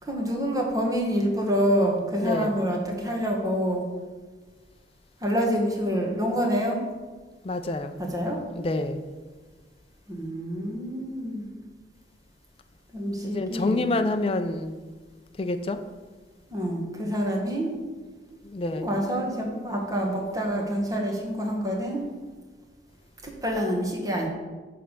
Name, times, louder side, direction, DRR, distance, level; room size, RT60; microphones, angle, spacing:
voice 1, 0.0-3.9 5.2-6.8 8.0-8.4 10.1-11.5 12.9-13.9 16.5-17.7 18.7-22.0 23.2-24.3, equal, 20° right, 0 dB, 1.3 m, -27 dB
voice 2, 2.2-2.5 7.4-8.0 8.5-9.0 13.2-14.8 15.4-15.8 18.4-18.9, left 2 dB, 30° left, 8 dB, 0.4 m, -27 dB
8.9 x 3.4 x 6.6 m, 1.4 s
head